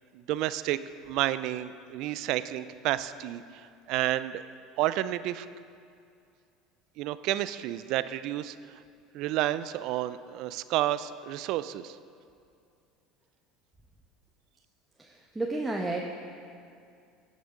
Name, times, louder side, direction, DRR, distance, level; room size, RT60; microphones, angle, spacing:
voice 1, 0.1-0.8 1.1-4.4 4.8-5.5 7.0-8.8 9.1-12.0, right 14 dB, 65° right, 14 dB, 0.4 m, -30 dB
voice 2, 15.0-16.0, right 2 dB, 15° right, -1 dB, 1.1 m, -32 dB
16.5 x 6.3 x 5.2 m, 2.4 s
hypercardioid pair, 85°, 0 cm